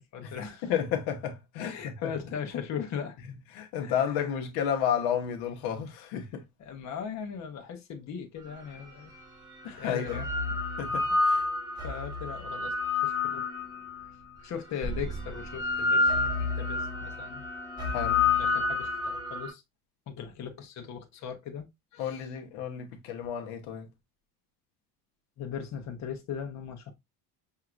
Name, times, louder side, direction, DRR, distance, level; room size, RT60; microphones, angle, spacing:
voice 1, 0.0-0.7 1.6-3.2 3.8-4.3 6.1-6.2 6.6-9.1 9.7-10.3 11.8-13.5 14.4-17.4 18.3-19.6 20.1-21.7 21.9-22.3 25.4-26.9, left 7 dB, 50° left, 1.1 m, -39 dB
voice 2, 0.6-2.1 3.5-6.4 9.6-10.2 10.8-11.5 17.9-18.3 22.0-23.9, left 8 dB, 85° left, 1.1 m, -32 dB
sound 1, 8.7-8.8 9.8-14.1 14.8-19.5, left 3 dB, 10° right, 1.2 m, -29 dB
5.8 x 2.9 x 2.5 m
cardioid pair, 115°, 36 cm